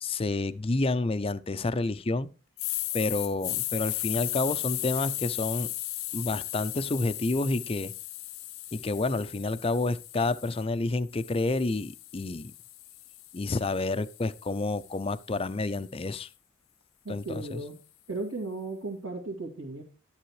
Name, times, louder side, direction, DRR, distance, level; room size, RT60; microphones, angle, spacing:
voice 1, 0.0-2.3 2.9-5.7 6.1-7.9 8.7-12.5 13.3-16.3 17.1-17.6, left 2 dB, 25° left, 0.4 m, -29 dB
sound 1, 2.6-10.6 11.1-15.3, left 16 dB, 70° left, 0.7 m, -36 dB
voice 2, 17.0-17.8 18.1-19.8, right 3 dB, 75° right, 2.1 m, -36 dB
11.0 x 10.5 x 3.2 m
head